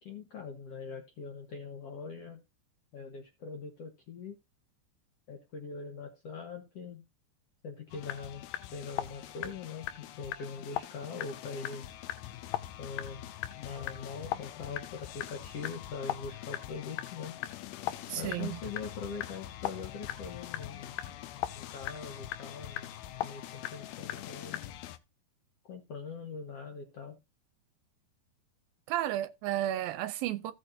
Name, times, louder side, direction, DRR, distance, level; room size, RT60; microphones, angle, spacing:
voice 1, 0.0-2.4 2.9-4.3 5.3-7.0 7.6-8.4 8.7-11.9 12.8-13.3 13.6-17.4 18.1-21.0 21.5-22.9 23.2-24.7 25.7-27.2, left 5 dB, 60° left, 1.6 m, -42 dB
sound 1, 7.9-25.0, left 13 dB, 85° left, 2.7 m, -40 dB
voice 2, 18.1-18.6 28.9-30.5, right 13 dB, 80° right, 2.2 m, -32 dB
16.0 x 6.4 x 2.7 m
omnidirectional pair, 4.4 m